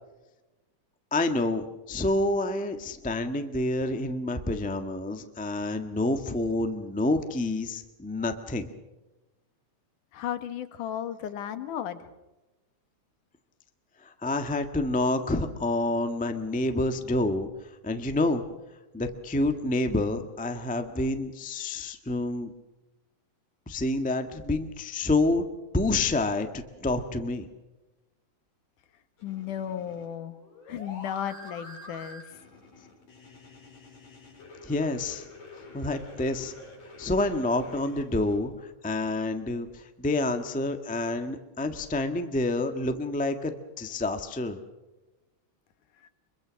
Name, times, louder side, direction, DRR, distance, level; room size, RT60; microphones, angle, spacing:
voice 1, 1.1-8.7 14.0-17.5 17.8-18.4 18.9-22.5 23.7-25.4 25.7-27.5 34.6-35.2 35.7-36.5 37.0-44.6, left 2 dB, 10° left, 7 dB, 0.3 m, -28 dB
voice 2, 10.1-12.1 29.2-30.4 30.7-32.3 46.0-46.1, left 10 dB, 85° left, 10 dB, 2.9 m, -34 dB
sound 1, 29.2-38.4, left 2 dB, 55° left, 6.4 m, -47 dB
25.5 x 23.0 x 6.4 m, 1.1 s
omnidirectional pair, 3.5 m